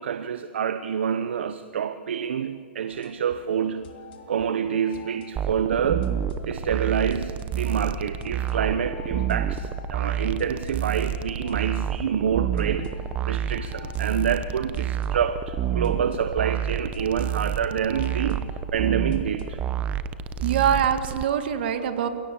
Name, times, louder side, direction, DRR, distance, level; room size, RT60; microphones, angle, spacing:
voice 1, 0.0-4.0 4.3-6.2 6.4-19.6, right 8 dB, 75° right, 10 dB, 1.0 m, -27 dB
sound 1, 2.9-19.7, left 5 dB, 55° left, 3.1 m, -47 dB
sound 2, 5.4-21.2, right 9 dB, 20° right, 0.9 m, -29 dB
voice 2, 20.4-22.1, right 8 dB, 60° right, 8 dB, 2.1 m, -24 dB
29.0 x 17.0 x 7.2 m, 2.3 s
hypercardioid pair, 135°, 6 cm